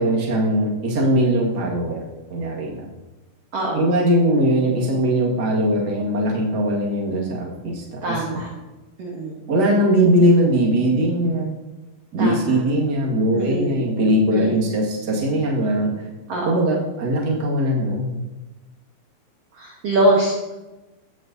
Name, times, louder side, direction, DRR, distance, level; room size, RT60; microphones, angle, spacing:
voice 1, 0.0-2.0 2.3-2.9 3.7-8.4 9.5-11.6 12.1-16.1 16.4-18.1, right 1 dB, 40° right, -3 dB, 1.7 m, -20 dB
voice 2, 3.5-3.9 8.0-8.5 9.0-9.4 12.2-12.6 13.3-13.8 14.3-14.6 16.3-16.7 19.6-20.5, right 1 dB, 60° right, -1 dB, 1.7 m, -23 dB
17.5 x 6.3 x 2.7 m, 1.1 s
omnidirectional pair, 4.2 m